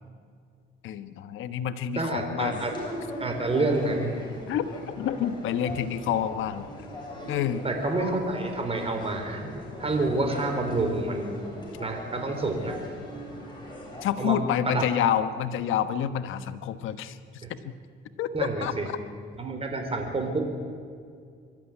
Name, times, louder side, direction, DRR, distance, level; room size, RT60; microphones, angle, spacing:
voice 1, 0.8-2.6 4.5-6.7 7.3-7.6 14.0-17.2 17.5-17.7 18.2-18.7, left 9 dB, 85° left, 11 dB, 1.2 m, -28 dB
voice 2, 2.0-2.7 3.2-4.1 7.6-9.5 9.8-11.4 11.8-12.7 14.2-15.1 18.3-18.9 19.4-20.4, right 2 dB, 30° right, 4 dB, 4.4 m, -28 dB
sound 1, 2.4-14.0, equal, 20° left, 8.0 m, -40 dB
24.5 x 13.5 x 9.9 m, 2.2 s
cardioid pair, 90°, 20 cm